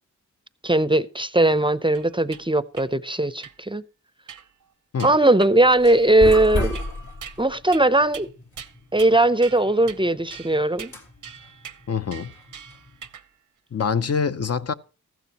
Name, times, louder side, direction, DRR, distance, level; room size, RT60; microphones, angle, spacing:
voice 1, 0.6-3.8 5.0-6.8 7.4-8.3 8.9-10.9, right 2 dB, 15° right, 0.5 m, -19 dB
sound 1, 1.9-2.4 2.7-2.9 3.4-3.6 4.3-4.6 5.0-5.5 5.9-6.3 6.7-7.4 7.7-7.9 8.1-8.3 8.6-9.2 9.4-10.0 10.3-13.3, right 8 dB, 80° right, 0.8 m, -42 dB
sound 2, 5.5-13.1, left 2 dB, 70° left, 2.6 m, -34 dB
voice 2, 11.9-12.3 13.7-14.7, left 6 dB, 50° left, 0.6 m, -25 dB
14.5 x 12.5 x 2.9 m
cardioid pair, 65°, 31 cm